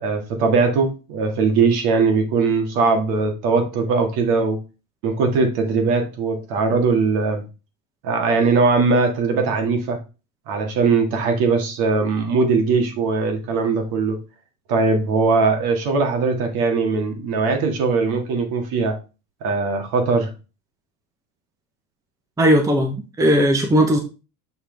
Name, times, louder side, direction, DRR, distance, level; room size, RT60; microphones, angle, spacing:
voice 1, 0.0-4.6 5.0-7.4 8.0-10.0 10.5-14.2 14.7-19.0 19.4-20.3, right 4 dB, 55° right, 4 dB, 2.1 m, -20 dB
voice 2, 22.4-24.0, equal, 5° right, 4 dB, 0.8 m, -17 dB
6.6 x 5.7 x 3.4 m, 0.32 s
supercardioid pair, 145°, 45 cm